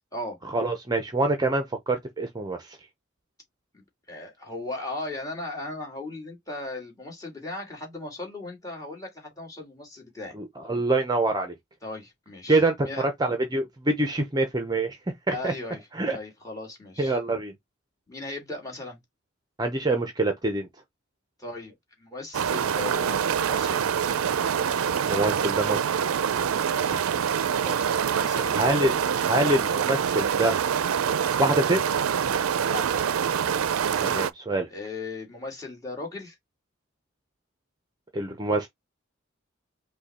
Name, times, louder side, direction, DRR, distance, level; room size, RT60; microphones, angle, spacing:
voice 1, 0.5-2.8 10.4-11.5 12.5-12.9 13.2-15.0 15.3-15.5 15.9-16.2 17.0-17.5 19.6-20.7 25.1-25.9 28.5-29.0 29.3-30.5 31.4-31.8 34.0-34.7 38.1-38.7, right 2 dB, 20° right, 0.6 m, -25 dB
voice 2, 3.7-10.3 11.8-13.1 15.3-17.2 18.1-19.0 21.4-23.8 26.6-27.1 27.6-28.6 32.6-32.9 34.7-36.4, left 2 dB, 15° left, 2.0 m, -37 dB
sound 1, 22.3-34.3, right 8 dB, 90° right, 0.4 m, -25 dB
5.4 x 2.2 x 4.1 m
head